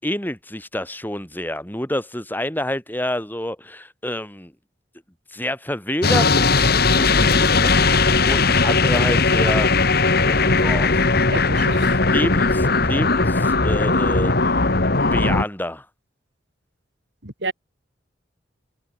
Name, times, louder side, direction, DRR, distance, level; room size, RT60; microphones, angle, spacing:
voice 1, 0.0-4.5 5.3-9.7 10.3-11.1 11.9-14.3 15.1-15.9, left 1 dB, 10° left, 7.0 m, -28 dB
sound 1, 6.0-15.4, left 3 dB, 55° left, 2.2 m, -18 dB
voice 2, 11.3-12.0 17.2-17.5, right 3 dB, 70° right, 4.6 m, -30 dB
head